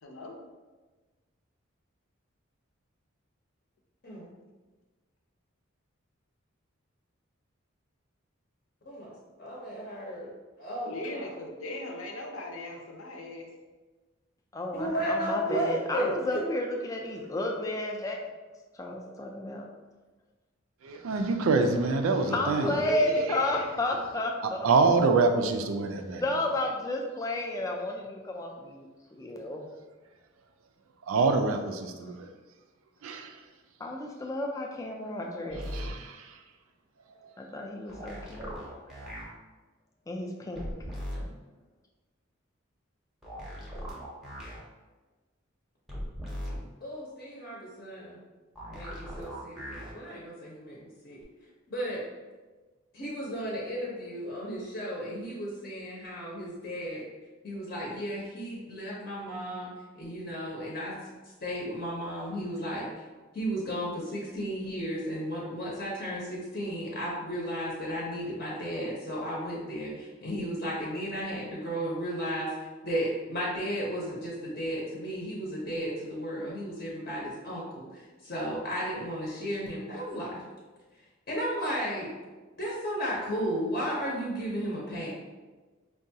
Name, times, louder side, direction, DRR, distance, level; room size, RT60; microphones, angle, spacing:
voice 1, 0.0-0.3 10.8-13.5 22.3-22.4 22.8-23.7, left 1 dB, 85° left, 1 dB, 0.6 m, -38 dB
voice 2, 9.4-10.3 10.6-11.2 14.7-16.4 46.8-48.2 48.6-51.2 51.7-52.0 52.9-57.0 57.4-60.9 61.4-62.9 63.3-72.5 72.8-80.4 81.3-82.1 82.6-85.1, equal, 45° left, -5 dB, 0.6 m, -34 dB
voice 3, 14.5-18.2 18.8-19.6 22.3-24.7 26.2-29.7 33.8-35.7 37.4-38.5 40.1-40.7, left 1 dB, 15° left, 1 dB, 0.3 m, -32 dB
voice 4, 20.8-22.8 23.2-23.5 23.8-23.9 24.4-26.6 31.1-32.3 33.0-33.4 35.7-36.4 37.2-37.3, right 4 dB, 85° right, 6 dB, 0.4 m, -26 dB
sound 1, 35.5-35.9 37.9-39.2 40.6-41.2 43.2-44.6 45.9-46.6 48.6-49.9 51.2-51.3, equal, ahead, 0.7 m, -38 dB
4.7 x 2.2 x 2.7 m, 1.3 s
head